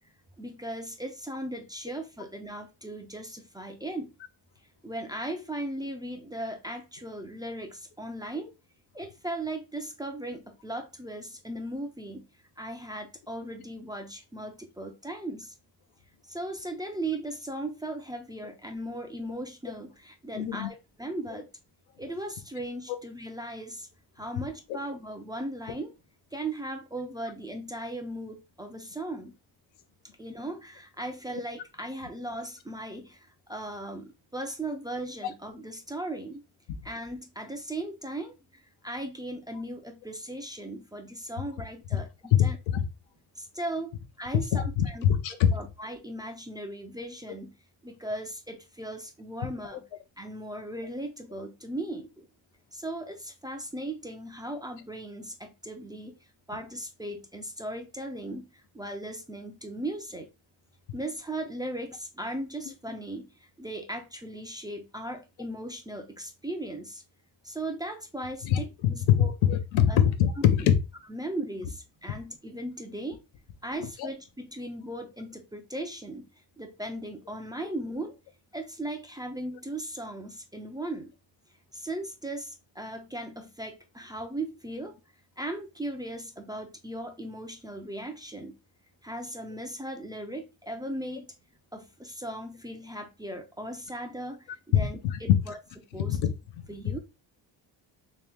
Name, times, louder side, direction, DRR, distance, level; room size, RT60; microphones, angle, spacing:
voice 1, 0.4-4.1 4.8-8.5 8.9-12.3 12.6-15.5 16.3-21.5 22.0-23.9 24.2-25.9 26.3-29.3 30.2-36.4 36.8-42.6 43.4-47.5 47.8-49.9 50.2-52.3 52.7-56.2 56.5-60.3 60.9-67.0 67.4-69.3 69.9-70.0 70.4-70.5 71.1-73.2 73.6-76.3 76.6-78.2 78.5-81.1 81.7-85.0 85.4-88.6 89.0-91.3 91.7-95.6 95.9-96.2 96.7-97.0, right 1 dB, 10° right, 0.4 m, -37 dB
voice 2, 20.3-20.7 24.7-24.8 42.3-42.8 44.5-45.5 68.4-68.6 69.1-70.7 74.0-74.1 95.0-95.1 96.1-96.3, left 10 dB, 85° left, 0.7 m, -23 dB
3.0 x 3.0 x 3.3 m
cardioid pair, 100°, 46 cm